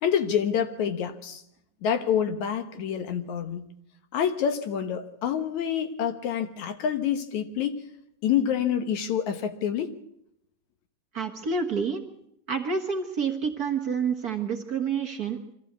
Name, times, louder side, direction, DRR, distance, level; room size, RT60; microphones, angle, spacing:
voice 1, 0.0-1.4 1.8-3.7 4.1-7.8 8.2-10.0, left 8 dB, 70° left, 2.4 m, -27 dB
voice 2, 11.1-12.0 12.5-15.5, right 5 dB, 50° right, 1.2 m, -28 dB
24.0 x 14.5 x 8.2 m
omnidirectional pair, 3.7 m